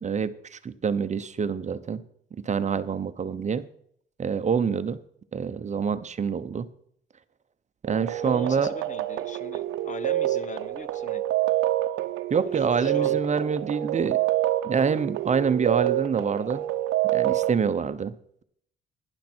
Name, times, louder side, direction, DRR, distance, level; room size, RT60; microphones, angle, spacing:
voice 1, 0.0-2.0 2.4-3.7 4.2-5.0 5.3-6.7 7.9-8.7 12.3-14.2 14.6-16.6 17.1-18.1, right 6 dB, 35° right, 12 dB, 0.8 m, -26 dB
sound 1, 7.8-17.5, right 14 dB, 85° right, 0.7 m, -27 dB
voice 2, 8.2-11.2 12.5-13.2, left 5 dB, 40° left, 15 dB, 0.9 m, -41 dB
11.5 x 10.5 x 4.5 m, 0.65 s
cardioid pair, 90°, 20 cm